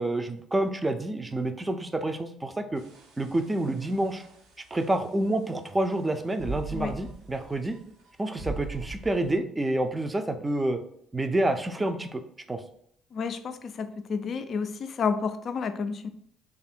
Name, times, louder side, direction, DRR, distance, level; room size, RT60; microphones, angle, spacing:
voice 1, 0.0-2.8 3.2-4.2 4.7-7.8 8.2-10.8 11.1-12.2 12.5-12.6, right 1 dB, 20° right, 7 dB, 0.5 m, -28 dB
sound 1, 2.8-9.4, right 2 dB, 70° right, 0.6 m, -41 dB
voice 2, 13.1-16.1, left 5 dB, 50° left, 9 dB, 0.3 m, -30 dB
3.3 x 2.4 x 4.3 m, 0.69 s
figure-of-eight pair, 50°, 0 cm